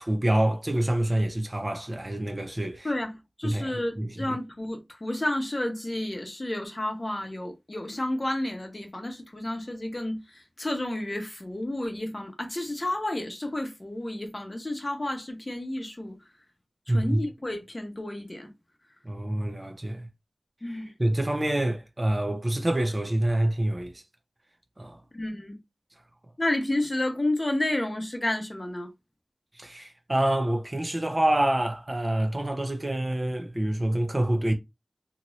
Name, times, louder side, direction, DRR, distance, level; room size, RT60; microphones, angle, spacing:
voice 1, 0.0-2.9 3.4-4.4 16.9-17.2 19.0-20.1 21.0-24.0 24.8-25.0 29.5-34.5, right 1 dB, 30° right, 0.5 m, -27 dB
voice 2, 2.8-16.2 16.9-18.5 20.6-20.9 25.1-25.6 26.4-28.9, left 1 dB, 30° left, 0.8 m, -31 dB
2.9 x 2.5 x 3.0 m
wide cardioid pair, 75°, 0 cm